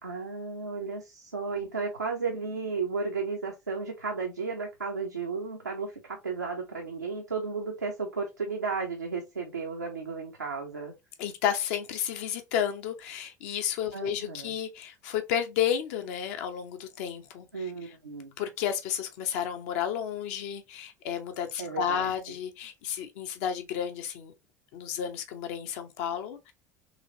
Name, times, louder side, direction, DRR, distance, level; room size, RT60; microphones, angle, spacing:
voice 1, 0.0-10.9 13.9-14.5 17.5-18.3 21.6-22.1, right 4 dB, 90° right, 0.7 m, -34 dB
voice 2, 11.2-17.9 18.4-24.3 24.7-26.5, left 9 dB, 60° left, 0.8 m, -32 dB
4.1 x 3.1 x 2.8 m
figure-of-eight pair, 65°, 9 cm